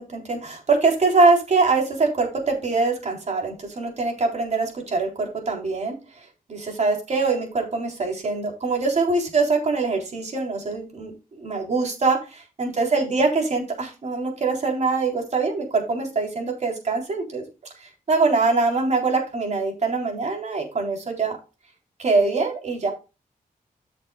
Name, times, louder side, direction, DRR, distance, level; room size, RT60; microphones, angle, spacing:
voice 1, 0.0-17.4 17.8-21.4 22.0-22.9, right 3 dB, 50° right, 1 dB, 3.8 m, -23 dB
14.0 x 6.8 x 2.4 m, 0.29 s
wide cardioid pair, 145°, 15 cm